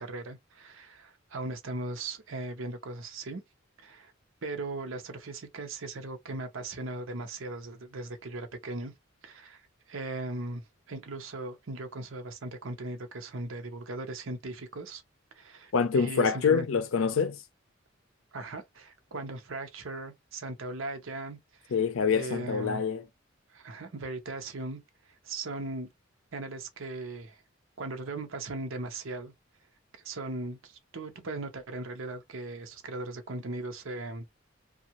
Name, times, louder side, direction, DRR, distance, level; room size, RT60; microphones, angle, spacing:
voice 1, 0.0-3.4 3.8-4.1 4.4-8.9 9.2-9.6 9.9-15.0 15.3-16.7 18.3-21.8 22.1-22.8 23.5-24.8 25.1-25.9 26.3-27.4 27.8-29.3 29.9-34.3, right 2 dB, 70° right, 0.8 m, -38 dB
voice 2, 15.7-17.4 21.7-23.0, left 6 dB, 80° left, 0.5 m, -26 dB
2.7 x 2.4 x 2.9 m
head